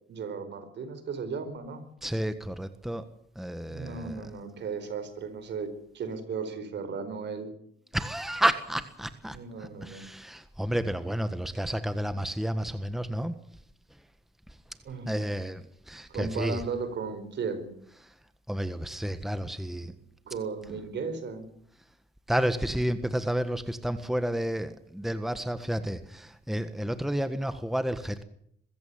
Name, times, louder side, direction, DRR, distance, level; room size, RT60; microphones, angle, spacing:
voice 1, 0.1-1.8 3.7-7.5 9.3-10.1 14.8-15.1 16.1-17.7 20.2-21.5, right 5 dB, 65° right, 10 dB, 4.7 m, -35 dB
voice 2, 2.0-3.1 3.3-4.2 7.9-13.3 15.1-16.6 18.5-19.9 22.3-28.2, equal, ahead, 11 dB, 1.5 m, -31 dB
22.0 x 15.5 x 9.4 m, 0.70 s
cardioid pair, 90°, 20 cm